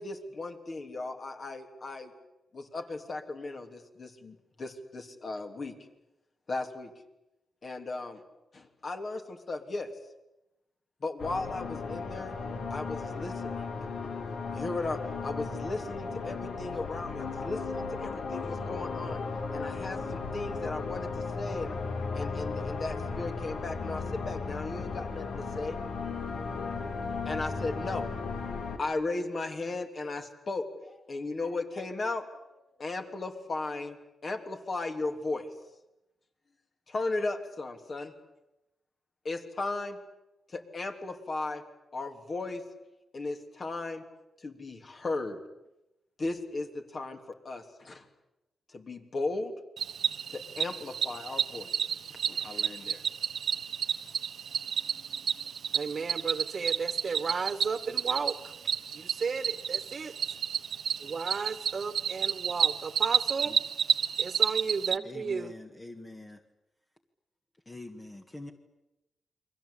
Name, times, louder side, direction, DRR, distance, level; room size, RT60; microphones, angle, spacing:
voice 1, 0.0-2.1 2.5-5.7 6.5-6.9 7.6-8.2 8.5-9.9 11.0-12.4 12.7-13.7 14.5-19.2 19.5-21.8 22.1-25.8 27.3-28.1 28.8-32.3 32.5-35.5 36.9-38.1 39.3-40.0 40.5-41.6 41.9-42.6 43.1-44.0 44.4-45.4 46.2-48.1 48.7-49.5 50.3-51.7 52.3-53.0, left 3 dB, 40° left, 5 dB, 3.4 m, -36 dB
sound 1, 11.2-28.8, left 4 dB, 75° left, 3.7 m, -35 dB
Cricket, 49.8-65.0, right 8 dB, 70° right, 1.0 m, -31 dB
voice 2, 55.7-58.5 58.9-60.1 61.0-63.5 64.2-65.5, right 5 dB, 45° right, 12 dB, 1.8 m, -34 dB
voice 3, 65.0-66.4 67.7-68.5, left 2 dB, 20° left, 3 dB, 1.9 m, -45 dB
29.5 x 23.0 x 8.6 m, 0.92 s
wide cardioid pair, 120°, 0 cm